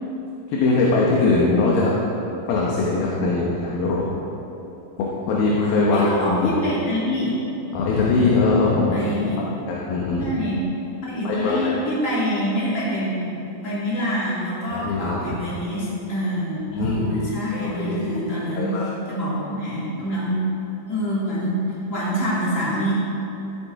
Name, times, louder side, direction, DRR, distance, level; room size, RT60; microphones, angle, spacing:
voice 1, 0.5-1.9 2.5-4.2 5.0-6.6 7.7-9.0 9.7-10.2 11.2-11.8 14.7-15.4 16.7-17.2 17.5-18.0 18.6-18.8, left 3 dB, 80° left, -4 dB, 2.9 m, -21 dB
voice 2, 5.9-7.3 8.9-9.4 10.2-10.6 11.0-13.3 13.6-20.4 20.9-22.9, equal, 20° left, -8 dB, 2.8 m, -26 dB
15.0 x 7.1 x 4.7 m, 2.9 s
omnidirectional pair, 4.2 m